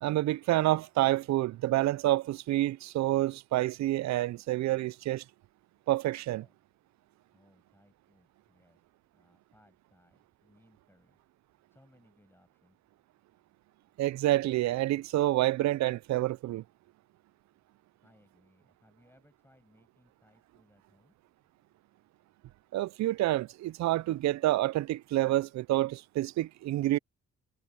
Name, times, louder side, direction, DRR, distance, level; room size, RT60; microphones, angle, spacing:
voice 1, 0.0-5.2 5.9-6.4 14.0-16.6 22.7-27.0, right 16 dB, 65° right, 0.5 m, -28 dB
voice 2, 7.3-8.8 9.1-11.2 11.7-12.8 18.0-21.2, left 1 dB, 5° left, 6.9 m, -65 dB
cardioid pair, 90°, 30 cm